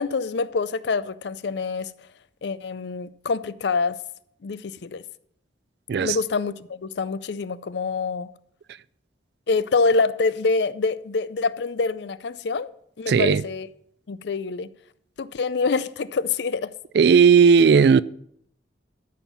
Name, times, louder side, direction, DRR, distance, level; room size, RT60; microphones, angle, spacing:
voice 1, 0.0-2.1 2.4-4.0 4.4-5.0 6.0-8.3 9.5-12.7 13.0-13.7 14.1-14.7 15.2-16.7, left 4 dB, 65° left, 0.4 m, -26 dB
voice 2, 13.1-13.4 16.9-18.0, right 6 dB, 60° right, 0.3 m, -15 dB
13.0 x 5.5 x 5.8 m
head